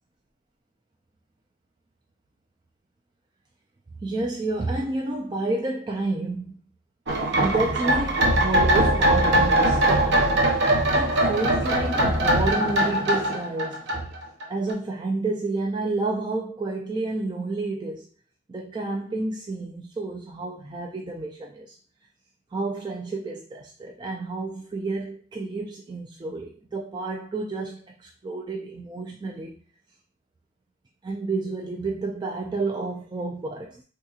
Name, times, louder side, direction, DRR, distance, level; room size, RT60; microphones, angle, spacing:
voice 1, 4.0-6.6 7.3-10.3 10.9-14.1 14.5-18.1 18.5-21.8 22.5-29.6 31.0-33.8, right 2 dB, 20° right, 0.3 m, -30 dB
sound 1, 7.1-14.4 14.7-14.8, right 1 dB, 55° right, 0.7 m, -21 dB
3.6 x 2.8 x 2.4 m
head